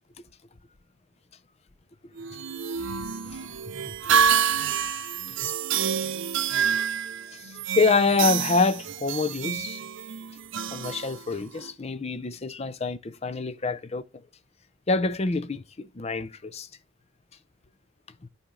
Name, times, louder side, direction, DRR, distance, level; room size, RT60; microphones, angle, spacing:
sound 1, 2.2-11.7, right 7 dB, 55° right, 0.5 m, -28 dB
voice 1, 7.3-9.8 10.7-14.0 14.9-16.7, left 4 dB, 30° left, 0.5 m, -26 dB
9.9 x 4.3 x 3.7 m
head